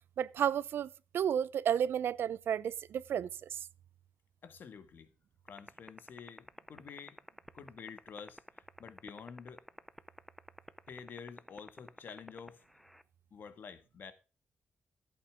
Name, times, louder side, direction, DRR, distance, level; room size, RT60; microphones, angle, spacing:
voice 1, 0.2-3.6, right 9 dB, 65° right, 0.5 m, -32 dB
voice 2, 4.4-5.1 5.4-7.2 7.5-8.4 8.8-9.7 10.9-12.6 13.3-14.1, left 6 dB, 55° left, 1.5 m, -49 dB
sound 1, 5.5-13.0, equal, ahead, 0.5 m, -47 dB
14.5 x 8.4 x 3.5 m
wide cardioid pair, 170°, 4 cm